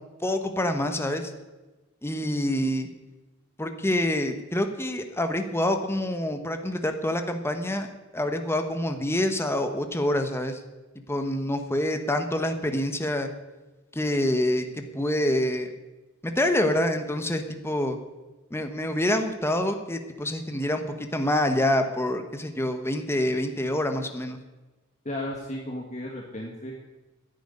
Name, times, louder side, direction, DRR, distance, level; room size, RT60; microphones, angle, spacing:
voice 1, 0.2-1.3 2.0-2.9 3.6-10.6 11.1-13.3 13.9-14.6 14.9-15.7 16.2-18.0 18.5-24.4, left 1 dB, 10° left, 6 dB, 1.2 m, -26 dB
voice 2, 25.0-26.7, left 1 dB, 35° left, -1 dB, 1.7 m, -34 dB
11.0 x 9.3 x 9.6 m, 1.1 s
head